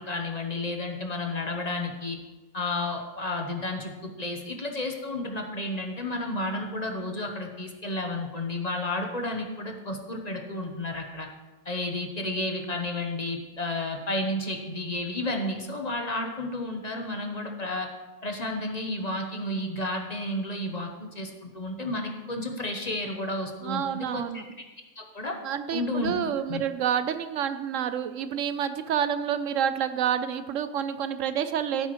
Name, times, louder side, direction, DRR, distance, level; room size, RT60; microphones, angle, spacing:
voice 1, 0.0-2.2 2.5-11.3 11.6-17.9 18.2-24.6 25.0-25.4 25.7-26.1 26.5-26.6, left 2 dB, 35° left, 3 dB, 1.1 m, -32 dB
voice 2, 23.6-24.4 25.4-31.9, right 8 dB, 80° right, 11 dB, 1.0 m, -28 dB
15.5 x 8.9 x 3.1 m, 1.2 s
omnidirectional pair, 1.3 m